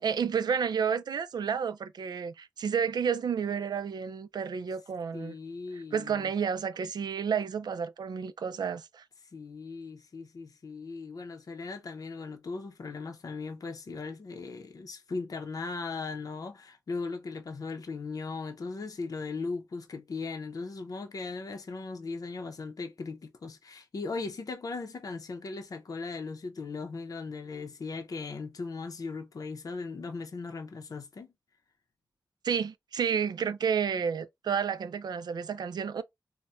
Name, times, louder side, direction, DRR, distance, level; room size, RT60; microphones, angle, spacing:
voice 1, 0.0-5.4 5.7-9.0 32.4-36.0, right 7 dB, 85° right, 0.4 m, -31 dB
voice 2, 5.1-6.3 9.3-31.3, left 4 dB, 60° left, 0.6 m, -38 dB
4.1 x 2.1 x 2.3 m
wide cardioid pair, 110°, 7 cm